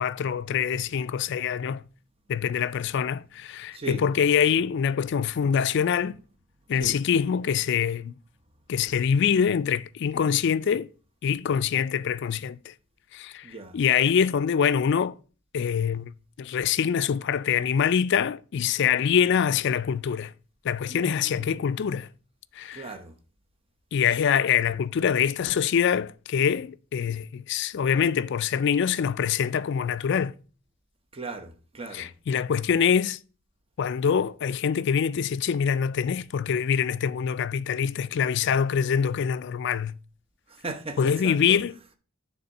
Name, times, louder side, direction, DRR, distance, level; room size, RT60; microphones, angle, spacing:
voice 1, 0.0-1.8 2.3-6.2 6.7-8.1 8.7-10.9 11.2-12.7 13.1-13.5 13.7-15.2 15.5-20.3 20.6-22.1 22.6-22.9 23.9-30.3 31.9-33.2 33.8-39.9 41.0-41.8, left 7 dB, 55° left, 0.3 m, -24 dB
voice 2, 20.9-21.6 22.7-23.1 31.1-32.1 40.6-41.0 41.2-41.6, right 2 dB, 25° right, 0.8 m, -37 dB
9.3 x 3.6 x 5.3 m
head